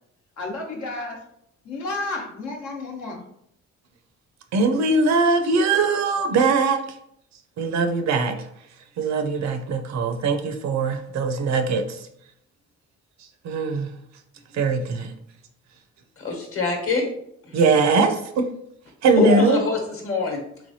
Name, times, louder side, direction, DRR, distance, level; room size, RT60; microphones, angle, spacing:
voice 1, 0.4-1.2 1.6-3.2, left 2 dB, 80° left, 0 dB, 1.0 m, -31 dB
voice 2, 4.5-6.8 7.6-8.4 9.0-12.0 13.4-13.9 14.5-15.1 17.5-18.5 19.0-19.7, right 4 dB, 65° right, 7 dB, 0.5 m, -21 dB
voice 3, 16.2-17.0 19.1-20.4, left 4 dB, 45° left, 1 dB, 1.1 m, -24 dB
3.3 x 3.2 x 2.7 m, 0.73 s
cardioid pair, 90°, 30 cm